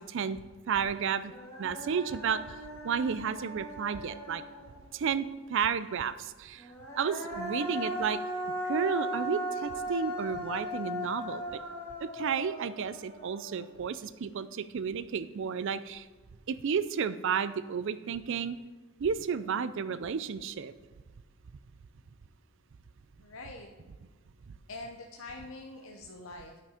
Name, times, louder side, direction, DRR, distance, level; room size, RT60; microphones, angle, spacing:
voice 1, 0.1-1.3 1.6-2.6 2.8-4.4 4.9-8.2 8.6-11.6 12.0-16.1 16.5-18.6 19.0-20.7 24.5-24.6, right 6 dB, 65° right, 14 dB, 0.4 m, -32 dB
Human voice, 0.8-0.9 1.2-4.9 6.6-13.8, equal, 15° left, 1.9 m, -38 dB
voice 2, 23.2-23.7 24.7-26.6, left 2 dB, 70° left, 2 dB, 0.7 m, -44 dB
10.0 x 5.9 x 4.9 m, 1.3 s
head